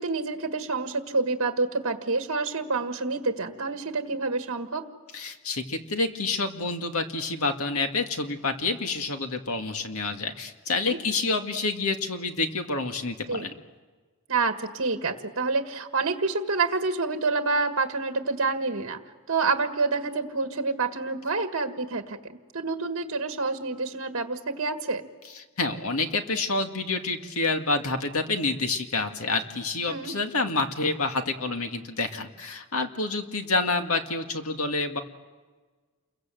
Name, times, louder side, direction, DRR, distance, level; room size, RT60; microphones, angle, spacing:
voice 1, 0.0-4.9 10.8-11.0 13.3-13.5 14.3-19.0 19.3-25.0 29.9-30.1, right 3 dB, 65° right, 6 dB, 1.7 m, -28 dB
voice 2, 5.1-13.5 25.6-35.0, left 3 dB, 85° left, 5 dB, 2.1 m, -28 dB
29.0 x 22.5 x 7.7 m, 1.4 s
head